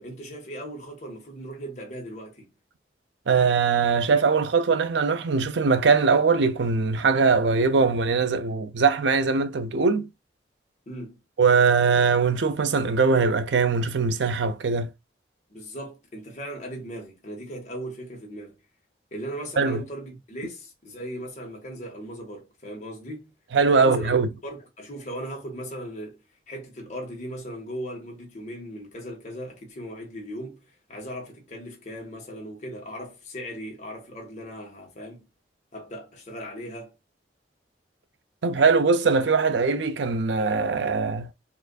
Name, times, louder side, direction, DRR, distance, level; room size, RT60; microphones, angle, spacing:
voice 1, 0.0-2.5 10.9-11.2 15.5-18.6 19.1-23.3 23.7-26.2 26.5-35.3 35.7-36.9, equal, 40° left, 1.4 m, -38 dB
voice 2, 3.3-10.1 11.4-14.9 19.6-19.8 23.5-24.3 38.4-41.3, right 4 dB, 85° right, 0.5 m, -21 dB
4.5 x 2.5 x 2.3 m
head